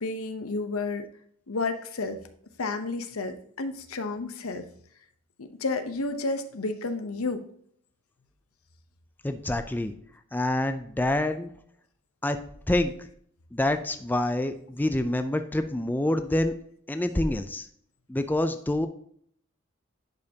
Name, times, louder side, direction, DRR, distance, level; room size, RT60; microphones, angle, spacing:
voice 1, 0.0-1.1 1.5-2.2 2.6-4.6 5.4-7.5, left 3 dB, 85° left, 9 dB, 0.8 m, -31 dB
voice 2, 9.2-9.9 10.3-11.5 12.2-12.4 12.7-12.9 13.5-16.5 16.9-17.7 18.1-18.9, left 1 dB, 10° left, 8 dB, 0.4 m, -26 dB
10.5 x 5.4 x 2.8 m, 0.64 s
head